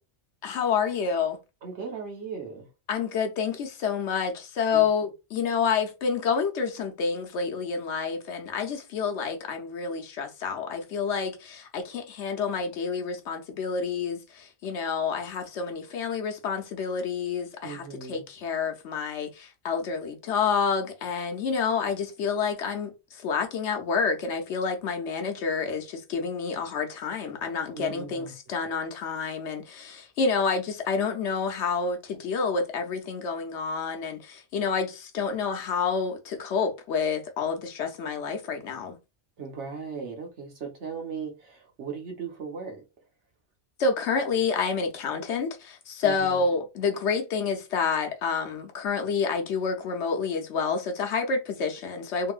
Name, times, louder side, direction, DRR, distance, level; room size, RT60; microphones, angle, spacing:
voice 1, 0.4-1.4 2.9-39.0 43.8-52.3, left 5 dB, 75° left, 1.0 m, -28 dB
voice 2, 1.6-2.7 4.7-4.9 17.6-18.3 27.7-28.3 39.4-42.8 46.0-46.4, right 6 dB, 75° right, 1.2 m, -37 dB
3.1 x 2.7 x 2.4 m
omnidirectional pair, 1.2 m